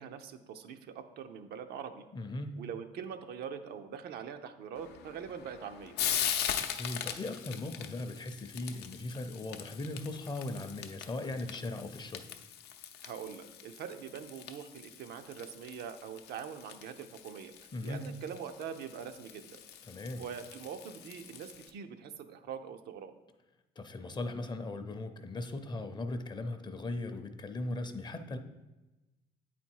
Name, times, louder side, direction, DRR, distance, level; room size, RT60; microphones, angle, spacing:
voice 1, 0.0-2.1 2.6-6.0 13.0-19.6 20.2-23.1, right 7 dB, 75° right, 7 dB, 0.6 m, -43 dB
voice 2, 2.1-2.6 6.7-12.2 17.7-18.0 19.9-20.3 23.8-28.4, left 2 dB, 25° left, 8 dB, 0.6 m, -38 dB
Frying (food), 4.7-21.7, left 9 dB, 80° left, 0.6 m, -41 dB
8.2 x 4.2 x 4.6 m, 1.1 s
cardioid pair, 110°, 17 cm